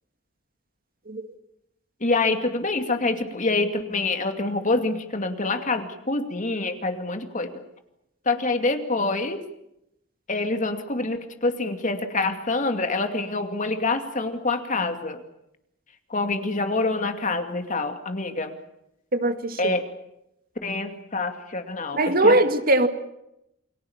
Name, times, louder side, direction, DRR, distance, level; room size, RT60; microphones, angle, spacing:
voice 1, 2.0-7.6 8.2-9.4 10.3-15.2 16.1-18.6 19.6-19.8 20.6-22.4, left 3 dB, 40° left, 7 dB, 2.5 m, -26 dB
voice 2, 19.1-19.7 21.9-22.9, right 2 dB, 50° right, 8 dB, 2.0 m, -20 dB
29.0 x 21.5 x 7.3 m, 0.82 s
head